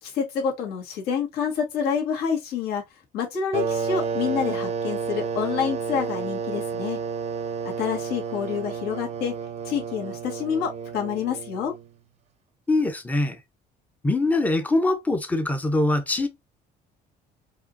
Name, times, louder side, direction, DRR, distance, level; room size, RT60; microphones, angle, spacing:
voice 1, 0.0-2.8 3.1-7.0 7.6-9.3 9.6-11.7, left 7 dB, 75° left, 1.9 m, -28 dB
sound 1, 3.5-11.9, right 6 dB, 40° right, 0.6 m, -31 dB
voice 2, 12.7-13.4 14.0-16.3, left 2 dB, 10° left, 0.7 m, -23 dB
4.8 x 2.8 x 2.7 m
cardioid pair, 160°, 17 cm